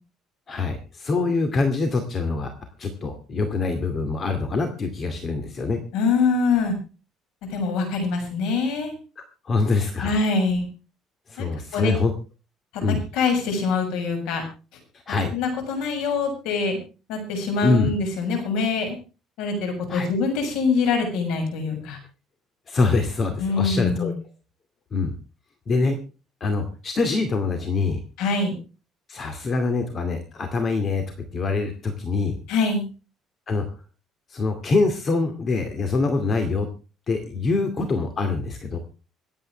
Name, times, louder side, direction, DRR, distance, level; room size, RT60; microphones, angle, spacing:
voice 1, 0.5-2.5 2.8-5.8 9.4-10.1 11.3-12.1 12.8-13.0 15.1-15.3 17.6-17.9 19.9-20.1 22.7-24.1 24.9-25.1 25.7-26.0 26.4-28.0 29.1-32.4 33.5-33.6 34.3-36.7 37.1-38.8, left 3 dB, 35° left, 7 dB, 2.3 m, -24 dB
voice 2, 5.9-6.7 7.5-8.9 10.0-10.6 11.4-11.9 13.1-14.4 15.1-16.8 17.1-19.0 19.4-22.0 23.4-24.1 28.2-28.5 32.5-32.8, left 4 dB, 85° left, 4 dB, 6.7 m, -24 dB
26.0 x 9.0 x 3.3 m, 0.33 s
cardioid pair, 140°, 0 cm